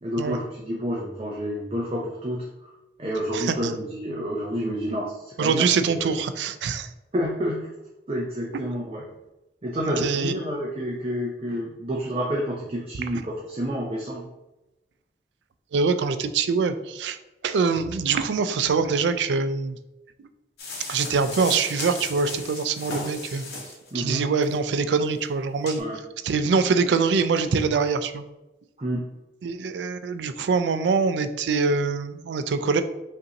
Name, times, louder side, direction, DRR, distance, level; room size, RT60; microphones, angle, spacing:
voice 1, 0.0-2.7 3.0-5.6 7.1-7.7 8.1-9.0 9.6-14.3 23.9-24.3 25.8-26.0 28.8-29.1, equal, 35° right, -3 dB, 0.5 m, -29 dB
voice 2, 3.3-3.7 5.4-6.9 8.5-8.6 9.8-10.3 15.7-17.2 17.4-19.8 20.9-23.4 23.9-25.8 26.2-28.2 29.4-32.8, right 5 dB, 85° right, 10 dB, 0.4 m, -24 dB
sound 1, 20.6-23.9 24.4-24.5 25.1-25.2 25.6-25.8, left 2 dB, 65° left, 0.9 m, -35 dB
5.2 x 2.6 x 2.8 m, 0.98 s
head